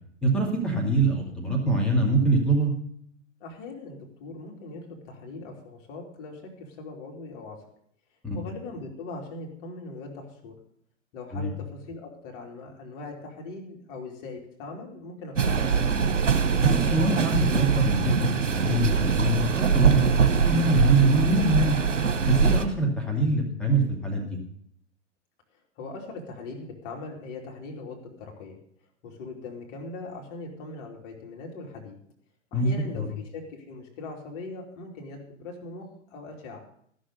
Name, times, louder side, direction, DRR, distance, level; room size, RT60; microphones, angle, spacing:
voice 1, 0.2-2.7 8.2-8.4 11.3-11.5 16.6-21.8 22.3-24.4 32.5-32.7 33.0-33.1, right 2 dB, ahead, -1 dB, 2.3 m, -24 dB
voice 2, 3.4-7.6 8.3-10.6 11.1-15.8 25.8-28.6 29.0-32.0 32.5-36.6, left 3 dB, 45° left, 1 dB, 2.9 m, -40 dB
sound 1, 15.4-22.6, right 6 dB, 75° right, 1.2 m, -23 dB
13.5 x 6.5 x 6.8 m, 0.66 s
figure-of-eight pair, 105°, 37 cm